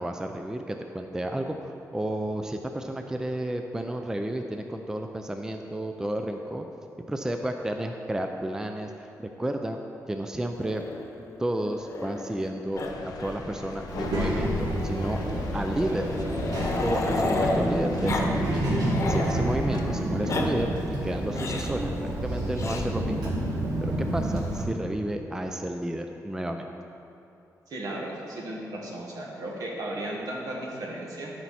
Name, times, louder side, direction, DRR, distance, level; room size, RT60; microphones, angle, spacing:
voice 1, 0.0-6.7 7.1-9.8 10.1-10.8 11.4-12.8 13.2-15.2 15.5-16.1 16.8-18.6 19.1-20.7 21.0-23.3 23.8-26.7, right 1 dB, 10° right, 5 dB, 0.4 m, -31 dB
Growling, 10.6-12.5 12.8-12.9 13.2-13.4 13.7-13.8 14.8-17.7 18.0-18.3 18.6-19.3 20.0-20.5 21.3-21.8 22.6-22.8 24.0-24.6, left 2 dB, 50° left, 0.9 m, -32 dB
sound 1, 12.7-19.8, left 3 dB, 85° left, 0.7 m, -39 dB
Child speech kid speaking, 13.9-24.6, right 1 dB, 90° right, 1.7 m, -29 dB
voice 2, 27.7-31.3, right 1 dB, 70° right, -3 dB, 1.7 m, -35 dB
13.5 x 4.6 x 4.2 m, 2.9 s
cardioid pair, 125°, 6 cm